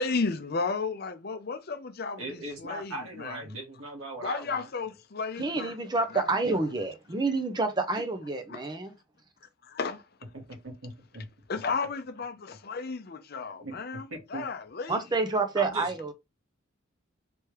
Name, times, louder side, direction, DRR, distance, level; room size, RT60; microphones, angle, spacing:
voice 1, 0.0-3.4 4.2-5.7 6.1-6.4 6.6-6.7 8.5-8.6 9.6-10.0 11.5-15.0, left 4 dB, 50° left, 0.6 m, -33 dB
voice 2, 2.2-4.7 10.3-11.2 13.4-13.8 14.1-14.4 15.5-15.9, right 2 dB, 85° right, 1.6 m, -39 dB
voice 3, 5.4-8.9 14.9-16.1, right 3 dB, 20° right, 0.6 m, -28 dB
3.4 x 3.1 x 4.6 m
head